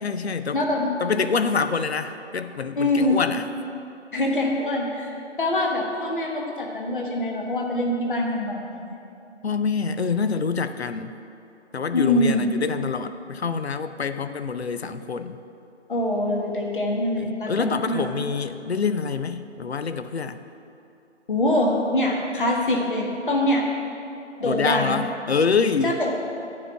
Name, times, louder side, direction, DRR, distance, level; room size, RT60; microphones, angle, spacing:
voice 1, 0.0-0.6 1.0-3.5 9.4-11.1 11.7-15.4 17.2-20.4 24.4-26.0, left 5 dB, 60° left, 10 dB, 0.5 m, -26 dB
voice 2, 0.5-1.0 2.8-3.2 4.1-9.0 11.9-12.5 15.9-18.1 21.3-23.6 24.4-25.0 25.8-26.1, left 1 dB, 45° left, 0 dB, 1.3 m, -24 dB
9.7 x 4.7 x 6.8 m, 2.7 s
figure-of-eight pair, 160°, 36 cm